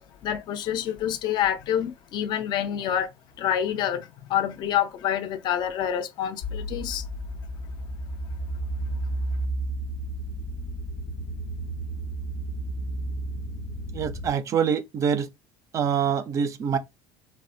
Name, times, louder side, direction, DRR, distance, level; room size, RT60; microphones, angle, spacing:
voice 1, 0.0-3.1 3.4-7.0, left 10 dB, 45° left, 0.5 m, -27 dB
sound 1, 6.4-14.3, right 1 dB, 85° left, 0.7 m, -32 dB
voice 2, 13.9-15.3 15.7-16.8, right 7 dB, 30° right, 0.4 m, -25 dB
3.3 x 2.1 x 2.6 m
cardioid pair, 145°, 11 cm